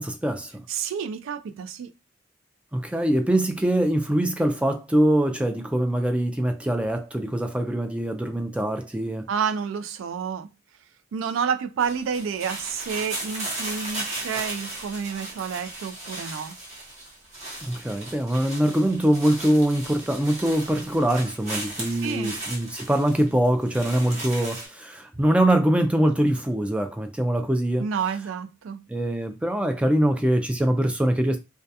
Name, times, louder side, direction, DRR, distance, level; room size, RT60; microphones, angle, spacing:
voice 1, 0.0-0.6 2.7-9.3 17.6-27.9 28.9-31.4, right 1 dB, 5° right, 0.3 m, -23 dB
voice 2, 0.7-1.9 9.3-10.5 11.1-16.6 22.0-22.3 27.8-28.8, right 6 dB, 90° right, 0.3 m, -29 dB
sound 1, 11.8-24.7, right 1 dB, 35° right, 0.9 m, -36 dB
2.2 x 2.2 x 2.7 m
head